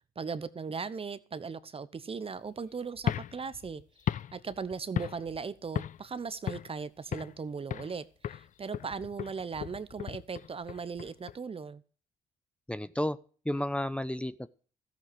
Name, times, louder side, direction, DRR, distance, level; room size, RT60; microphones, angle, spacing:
voice 1, 0.2-11.8, right 5 dB, 35° right, 15 dB, 0.9 m, -38 dB
sound 1, 3.0-5.4 5.8-6.1 6.5-7.4 7.7-8.0 8.2-11.4, left 10 dB, 50° left, 0.5 m, -36 dB
voice 2, 12.7-13.2 13.4-14.5, left 1 dB, 5° left, 14 dB, 0.8 m, -32 dB
14.0 x 8.4 x 6.2 m, 0.39 s
hypercardioid pair, 50°, 16 cm